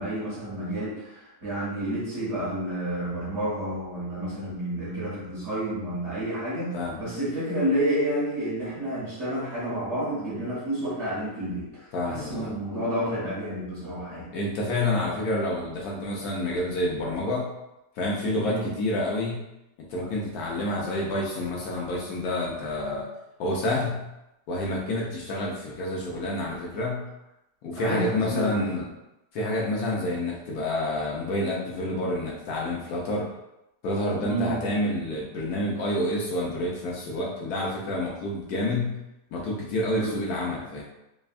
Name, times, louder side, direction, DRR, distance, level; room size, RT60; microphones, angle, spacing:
voice 1, 0.0-14.3 18.4-18.7 27.7-28.8 34.2-34.6 39.9-40.2, right 1 dB, 50° right, -8 dB, 1.0 m, -30 dB
voice 2, 11.9-12.6 14.3-17.5 18.0-19.4 19.9-23.1 23.4-24.0 24.5-27.1 27.6-28.8 29.3-33.3 33.8-39.0 39.3-40.8, left 1 dB, 70° left, -3 dB, 1.0 m, -28 dB
3.4 x 2.1 x 2.3 m, 0.91 s
omnidirectional pair, 1.8 m